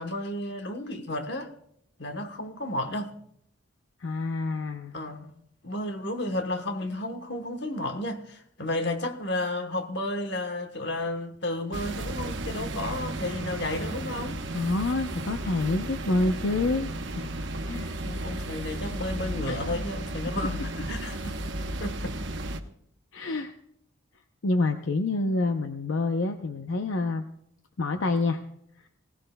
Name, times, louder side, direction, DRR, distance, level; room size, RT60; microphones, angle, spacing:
voice 1, 0.0-1.5 2.0-3.1 4.9-5.3 5.6-14.4 18.0-21.4 21.7-22.2, left 1 dB, 55° left, 1.1 m, -32 dB
voice 2, 4.0-4.9 14.5-17.3 17.7-17.9 19.5-19.6 23.1-23.5 24.4-27.3 27.8-28.4, left 2 dB, 70° left, 0.6 m, -27 dB
sound 1, 11.7-22.6, right 1 dB, 60° right, 0.9 m, -34 dB
19.0 x 17.0 x 2.2 m
head